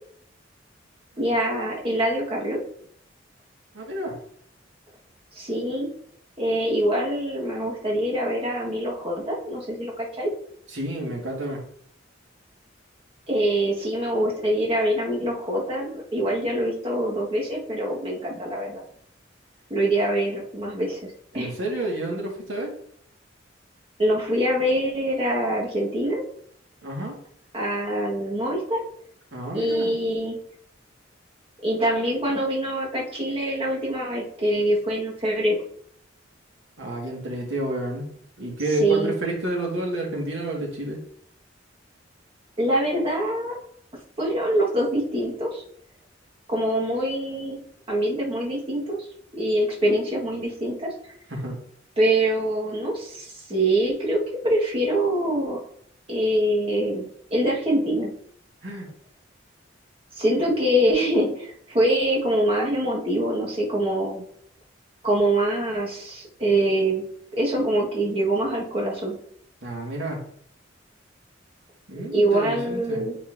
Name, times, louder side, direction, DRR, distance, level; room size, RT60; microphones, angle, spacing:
voice 1, 1.2-2.6 5.3-5.9 6.4-10.3 13.3-18.8 19.7-21.0 21.3-21.5 24.0-26.2 27.5-28.8 29.5-30.4 31.6-35.6 38.8-39.1 42.6-43.5 44.2-45.6 46.5-47.6 47.9-49.1 49.3-50.9 52.0-55.6 56.1-58.1 60.1-64.2 65.0-67.0 67.4-69.1 72.0-73.2, right 1 dB, 30° right, -3 dB, 1.5 m, -24 dB
voice 2, 3.7-4.1 10.7-11.6 21.3-22.7 26.8-27.1 29.3-29.9 36.8-38.1 38.4-41.0 51.3-51.6 58.6-58.9 69.6-70.2 71.9-73.0, right 1 dB, 80° right, -1 dB, 1.8 m, -29 dB
9.2 x 4.2 x 2.6 m, 0.65 s
head